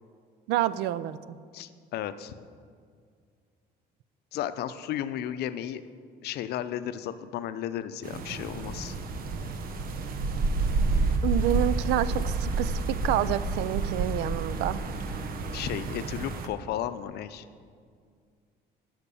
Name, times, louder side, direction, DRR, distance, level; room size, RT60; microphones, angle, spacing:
voice 1, 0.5-1.2 11.2-14.8, right 12 dB, 85° right, 16 dB, 0.4 m, -28 dB
voice 2, 1.5-2.3 4.3-5.8 6.2-8.9 15.5-17.4, left 11 dB, 75° left, 12 dB, 0.6 m, -34 dB
sound 1, 8.0-16.5, right 3 dB, 60° right, 1.0 m, -29 dB
12.0 x 5.9 x 6.9 m, 2.1 s
cardioid pair, 110°, 17 cm